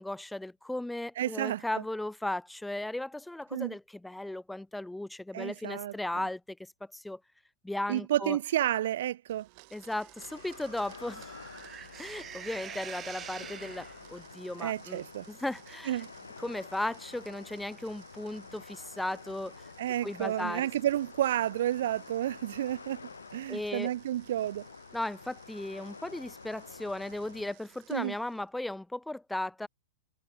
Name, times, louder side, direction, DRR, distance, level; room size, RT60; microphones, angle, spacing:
voice 1, 0.0-6.6 6.9-7.2 7.6-8.4 9.7-11.3 12.0-15.0 15.3-16.0 16.4-19.7 20.0-20.7 23.5-23.9 24.9-29.7, left 1 dB, 5° left, 0.4 m, -36 dB
voice 2, 1.2-1.8 3.5-3.7 5.3-5.9 7.9-9.5 14.6-15.3 15.9-16.1 19.8-24.7 27.9-28.1, right 12 dB, 65° right, 0.6 m, -31 dB
Domestic sounds home sounds, 9.3-28.5, right 35 dB, 50° right, 6.6 m, -58 dB
sound 1, 9.9-14.2, right 8 dB, 25° right, 0.7 m, -46 dB
sound 2, 10.2-27.5, left 5 dB, 85° left, 1.2 m, -49 dB
hypercardioid pair, 105°, 0 cm